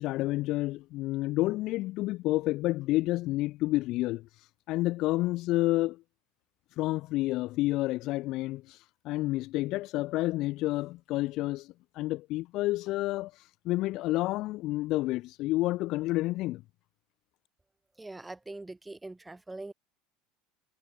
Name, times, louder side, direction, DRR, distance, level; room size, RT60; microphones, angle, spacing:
voice 1, 0.0-4.3 4.7-6.0 6.8-8.8 9.0-13.3 13.6-16.6, left 18 dB, 55° left, 1.5 m, -29 dB
voice 2, 18.0-19.7, right 2 dB, 10° right, 5.9 m, -42 dB
hypercardioid pair, 75°, 0 cm